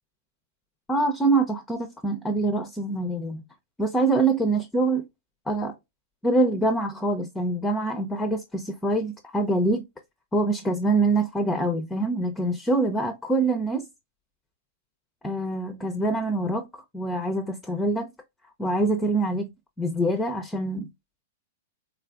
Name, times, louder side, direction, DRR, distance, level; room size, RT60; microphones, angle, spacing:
voice 1, 0.9-3.4 3.8-5.0 5.5-5.7 6.2-9.8 10.3-13.9 15.2-16.7 16.9-18.1 18.6-19.5 19.8-20.9, right 2 dB, 10° left, 0.5 m, -25 dB
3.6 x 2.4 x 2.3 m
hypercardioid pair, 110°, 0 cm